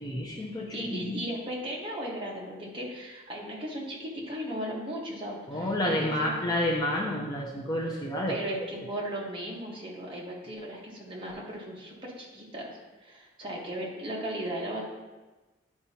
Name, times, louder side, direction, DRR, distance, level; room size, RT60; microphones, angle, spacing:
voice 1, 0.0-1.2 5.5-8.6, left 1 dB, 20° left, -2 dB, 0.6 m, -30 dB
voice 2, 0.7-6.4 8.3-14.8, right 1 dB, 25° right, -3 dB, 1.3 m, -36 dB
10.0 x 4.7 x 2.8 m, 1.2 s
head